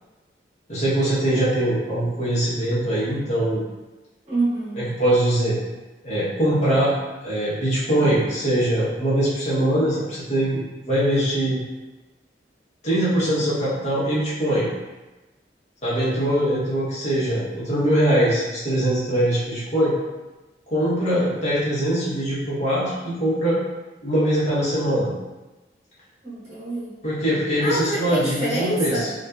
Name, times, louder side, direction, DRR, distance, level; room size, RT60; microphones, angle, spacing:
voice 1, 0.7-3.6 4.8-5.6 6.0-6.9 7.2-10.6 10.9-11.6 12.8-14.7 15.8-19.9 20.7-23.6 24.0-25.1 27.0-29.1, right 1 dB, 40° left, -9 dB, 0.9 m, -22 dB
voice 2, 4.3-4.8 26.2-27.0 27.6-29.1, right 1 dB, 35° right, -9 dB, 1.0 m, -26 dB
2.7 x 2.4 x 2.3 m, 1.1 s
head